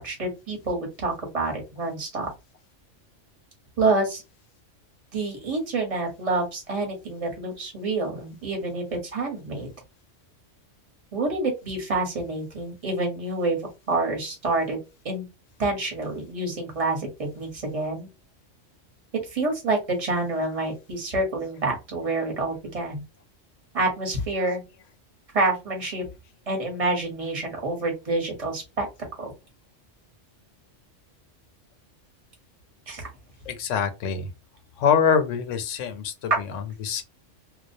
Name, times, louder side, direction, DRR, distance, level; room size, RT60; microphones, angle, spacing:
voice 1, 0.0-2.3 3.8-4.2 5.1-8.8 9.1-9.7 11.1-14.8 15.0-15.3 15.6-18.1 19.3-23.0 23.7-24.6 25.3-26.0 26.5-28.9 29.2-29.3 32.9-33.1 36.3-36.4, right 2 dB, 30° right, 1.0 m, -27 dB
voice 2, 33.5-34.3 34.8-37.0, left 7 dB, 85° left, 0.9 m, -25 dB
2.3 x 2.1 x 2.6 m
omnidirectional pair, 1.3 m